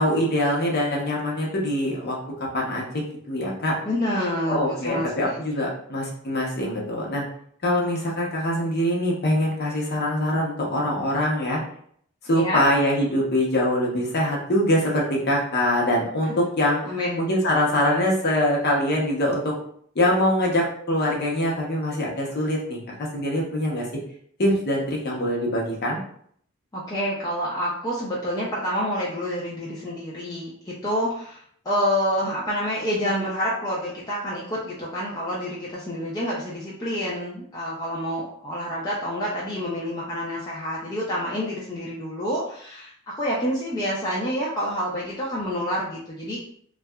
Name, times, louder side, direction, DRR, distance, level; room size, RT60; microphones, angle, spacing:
voice 1, 0.0-2.2 2.5-3.8 4.5-7.2 7.6-11.6 12.2-16.8 17.2-19.5 19.9-23.9 24.4-26.0, left 1 dB, 45° left, -2 dB, 0.7 m, -23 dB
voice 2, 3.8-5.3 12.3-12.6 16.2-16.3 16.8-17.2 26.7-46.4, equal, 15° left, -6 dB, 0.4 m, -28 dB
2.7 x 2.2 x 2.2 m, 0.63 s
head